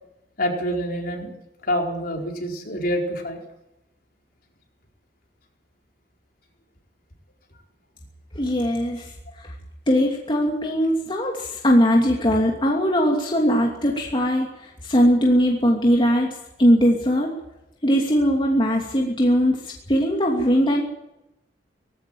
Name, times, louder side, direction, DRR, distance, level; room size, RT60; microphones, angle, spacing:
voice 1, 0.4-1.3 1.6-3.4, equal, 55° left, 1 dB, 4.4 m, -26 dB
voice 2, 8.3-9.1 9.9-14.5 14.8-16.3 16.6-17.3 17.8-20.8, equal, 30° left, 0 dB, 2.8 m, -20 dB
19.0 x 16.0 x 9.3 m, 0.88 s
head